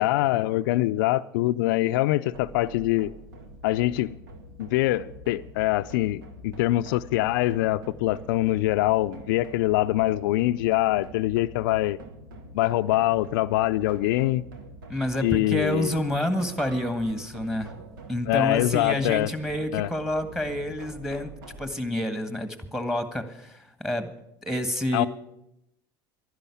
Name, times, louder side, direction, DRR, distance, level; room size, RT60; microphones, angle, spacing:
voice 1, 0.0-3.1 3.6-4.1 4.6-12.0 12.5-14.4 15.2-15.9 18.3-19.3 19.7-19.9 24.9-25.1, left 16 dB, 80° left, 0.4 m, -24 dB
sound 1, 2.3-21.7, right 1 dB, 90° right, 1.8 m, -45 dB
voice 2, 14.9-17.8 18.1-21.3 21.6-24.1 24.4-25.1, left 1 dB, 5° right, 1.7 m, -28 dB
sound 2, 16.6-18.4, right 8 dB, 50° right, 5.8 m, -51 dB
12.0 x 10.5 x 8.5 m
supercardioid pair, 95°, 11 cm